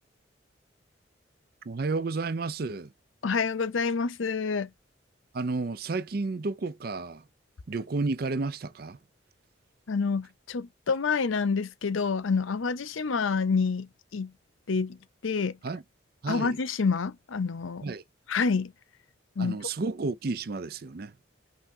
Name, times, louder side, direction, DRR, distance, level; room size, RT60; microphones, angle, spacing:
voice 1, 1.7-2.9 5.3-7.2 7.7-9.0 15.6-15.8 16.2-16.6 17.8-18.0 19.4-21.1, right 3 dB, 50° right, 0.5 m, -31 dB
voice 2, 3.2-4.7 9.9-14.3 14.7-15.0 15.2-15.6 16.3-17.9 18.3-18.7 19.4-19.7, left 5 dB, 85° left, 0.6 m, -28 dB
5.5 x 3.5 x 2.8 m
head